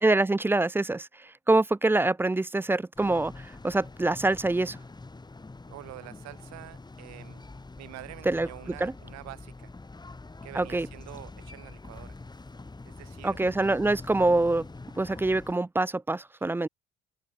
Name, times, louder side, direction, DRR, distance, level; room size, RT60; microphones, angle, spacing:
voice 1, 0.0-4.8 8.3-8.9 10.5-10.9 13.2-14.7 15.0-16.7, right 2 dB, 10° right, 0.4 m, -25 dB
sound 1, 3.0-15.5, left 3 dB, 15° left, 1.6 m, -45 dB
voice 2, 5.7-7.4 7.8-9.7 10.4-12.2 12.8-13.4, right 18 dB, 60° right, 2.3 m, -46 dB
open air
hypercardioid pair, 55°, 30 cm